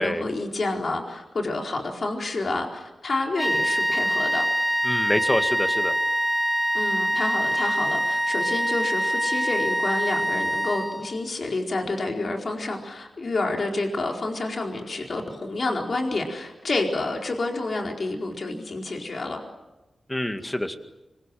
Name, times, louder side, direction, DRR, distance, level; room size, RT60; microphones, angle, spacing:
voice 1, 0.0-4.5 6.7-19.4, left 2 dB, 50° left, 1 dB, 4.5 m, -29 dB
sound 1, 3.4-11.2, right 1 dB, 5° right, 1.1 m, -24 dB
voice 2, 4.8-5.9 20.1-20.8, left 1 dB, 15° left, 7 dB, 2.1 m, -26 dB
26.0 x 24.5 x 7.7 m, 1.0 s
wide cardioid pair, 105°, 0 cm